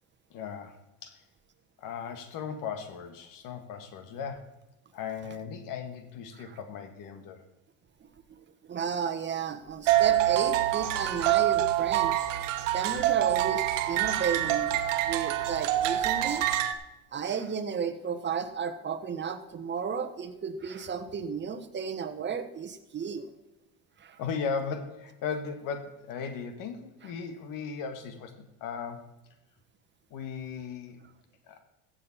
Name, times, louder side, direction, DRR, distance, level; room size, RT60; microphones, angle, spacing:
voice 1, 0.3-1.2 1.8-4.5 4.9-7.4 24.2-29.1 30.1-31.0 31.5-31.6, left 6 dB, 60° left, 8 dB, 1.7 m, -37 dB
voice 2, 8.0-12.2 12.7-14.8 15.1-16.4 17.1-23.3 24.0-24.2, right 6 dB, 30° right, 7 dB, 1.3 m, -33 dB
sound 1, 9.9-16.7, right 13 dB, 80° right, 1.2 m, -26 dB
15.0 x 7.5 x 4.2 m, 0.96 s
supercardioid pair, 95°, 37 cm